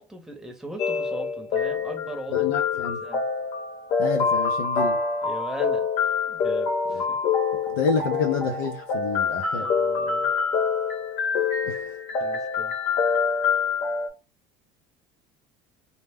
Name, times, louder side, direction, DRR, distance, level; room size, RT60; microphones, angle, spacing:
voice 1, 0.0-3.3 5.2-5.9 6.3-7.2 9.5-10.3 12.2-12.7, right 1 dB, 5° right, 0.8 m, -39 dB
sound 1, 0.8-14.1, left 5 dB, 55° left, 0.9 m, -26 dB
voice 2, 2.3-3.0 4.0-5.0 6.9-7.0 7.7-9.7 11.6-12.0, left 5 dB, 90° left, 0.5 m, -28 dB
2.1 x 2.1 x 3.4 m
supercardioid pair, 110°, 14 cm